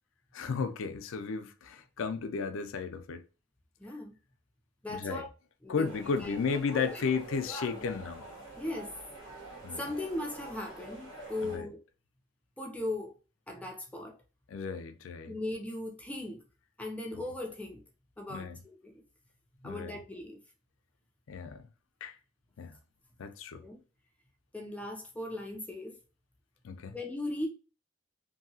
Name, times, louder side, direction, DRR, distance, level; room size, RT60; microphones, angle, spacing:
voice 1, 0.3-3.2 4.9-5.2 5.7-8.2 9.6-9.9 11.4-11.7 14.5-15.3 18.3-18.6 19.6-20.0 21.3-21.7 22.0-22.2 22.6-22.8 23.2-23.6 26.6-27.0, left 5 dB, 75° left, 0.4 m, -34 dB
voice 2, 3.8-4.2 4.8-5.3 5.6-5.9 6.1-7.0 7.5-7.8 8.6-8.9 9.7-11.8 12.6-13.2 13.5-14.2 15.3-16.4 16.8-17.8 18.2-18.9 19.6-20.4 23.6-23.8 24.5-26.0 26.9-27.5, left 1 dB, 5° left, 0.4 m, -38 dB
sound 1, 5.8-11.6, right 2 dB, 60° right, 1.6 m, -47 dB
2.8 x 2.6 x 2.7 m
head